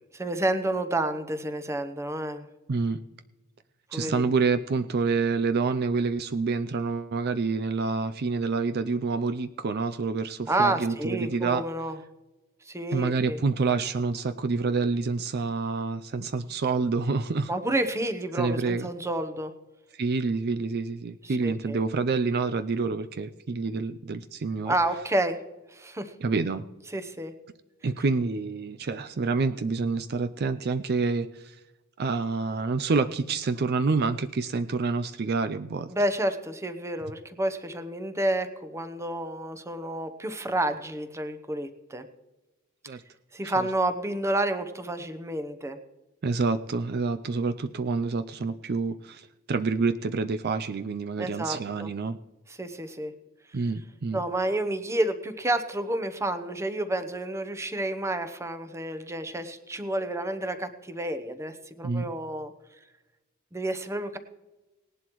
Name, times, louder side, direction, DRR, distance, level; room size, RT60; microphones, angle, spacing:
voice 1, 0.1-2.5 3.9-4.2 10.5-12.0 12.7-13.4 17.5-19.5 21.2-21.8 24.7-25.4 25.7-26.1 26.9-27.3 35.9-42.1 43.3-45.8 51.2-51.9 52.5-53.1 54.1-62.5 63.5-64.2, right 1 dB, 15° right, 9 dB, 0.9 m, -30 dB
voice 2, 3.9-11.6 12.9-17.5 18.3-18.9 19.9-24.7 26.2-26.7 27.8-31.6 32.0-35.9 42.9-43.0 43.4-43.7 46.2-52.2 53.5-54.2 61.8-62.0, right 4 dB, 50° right, 11 dB, 0.4 m, -27 dB
18.5 x 11.0 x 3.1 m, 1.1 s
head